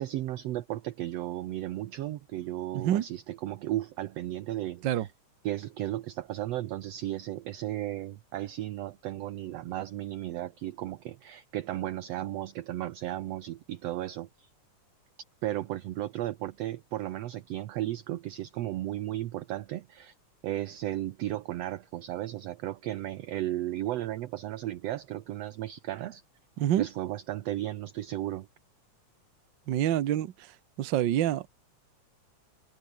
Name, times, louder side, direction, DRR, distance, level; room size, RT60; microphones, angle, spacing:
voice 1, 0.0-5.1 5.4-14.5 15.4-20.1 20.4-26.2 26.8-28.5, right 14 dB, 70° right, 1.8 m, -35 dB
voice 2, 2.7-3.1 4.8-5.1 26.6-26.9 29.7-30.5 30.8-31.5, right 11 dB, 90° right, 1.0 m, -27 dB
omnidirectional pair, 3.5 m